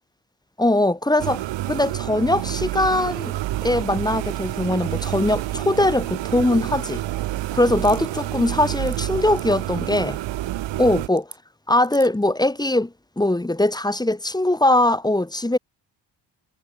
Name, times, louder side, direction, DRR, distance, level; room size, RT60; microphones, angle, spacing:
voice 1, 0.6-1.4 1.7-3.3 3.6-7.0 7.5-10.2 10.8-11.2 11.7-15.6, left 1 dB, 10° left, 1.3 m, -21 dB
sound 1, 1.2-11.1, right 15 dB, 80° right, 1.2 m, -28 dB
sound 2, 7.8-8.0 8.6-9.0 9.4-9.5 9.9-10.0 11.2-11.4 11.8-12.2, right 5 dB, 40° right, 7.0 m, -42 dB
cardioid pair, 70°, 43 cm